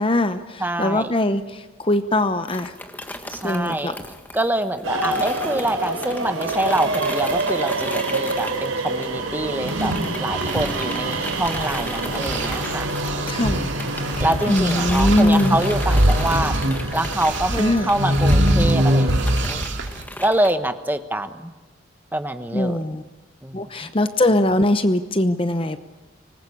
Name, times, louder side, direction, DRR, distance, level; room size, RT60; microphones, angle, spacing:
voice 1, 0.0-2.7 3.4-3.9 13.3-13.7 14.5-15.6 17.6-17.9 22.5-23.0 23.5-25.8, left 1 dB, 25° left, 10 dB, 0.8 m, -21 dB
voice 2, 0.6-1.1 3.3-4.0 4.3-13.2 14.2-16.6 16.9-19.7 20.2-21.5 22.1-22.8 23.4-23.9, right 1 dB, 10° right, 8 dB, 1.1 m, -25 dB
sound 1, 2.5-9.4 9.7-20.5, left 1 dB, 10° left, 1.5 m, -36 dB
sound 2, 4.8-19.5, right 2 dB, 90° right, 4.3 m, -28 dB
sound 3, 9.5-11.8 12.1-20.0, right 1 dB, 60° right, 2.3 m, -23 dB
25.0 x 20.0 x 8.6 m, 1.2 s
head